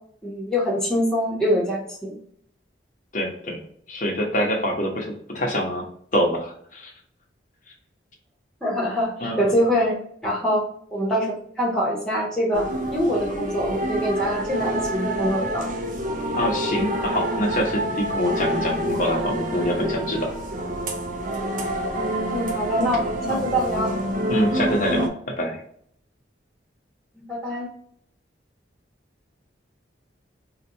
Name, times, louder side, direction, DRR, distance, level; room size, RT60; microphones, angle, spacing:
voice 1, 0.2-2.1 8.6-9.9 10.2-10.6 10.9-15.7 22.2-24.0 27.2-27.7, equal, 5° left, -5 dB, 1.2 m, -24 dB
voice 2, 3.1-3.6 3.9-5.8 6.1-6.9 9.2-9.4 16.3-20.3 23.3-23.5 24.3-25.6, equal, 40° left, 0 dB, 0.9 m, -25 dB
sound 1, 12.5-25.1, right 1 dB, 45° right, 0.5 m, -27 dB
4.3 x 2.4 x 2.6 m, 0.64 s
head